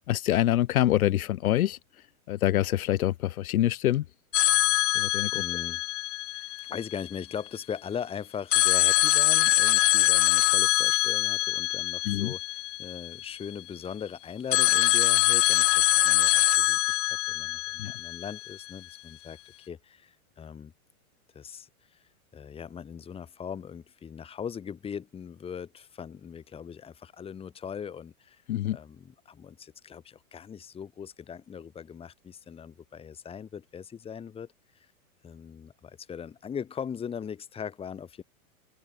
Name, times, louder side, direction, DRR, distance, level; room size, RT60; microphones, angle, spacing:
voice 1, 0.1-1.8 2.3-4.0 5.0-5.3 12.1-12.3 17.8-17.9 28.5-28.8, left 13 dB, 75° left, 2.0 m, -25 dB
sound 1, 4.3-7.2 8.5-13.4 14.5-18.7, left 18 dB, 55° left, 1.4 m, -24 dB
voice 2, 4.9-5.8 6.7-20.7 21.3-22.0 22.3-28.4 28.7-34.5 35.2-38.2, left 7 dB, 15° left, 1.8 m, -40 dB
supercardioid pair, 150°, 43 cm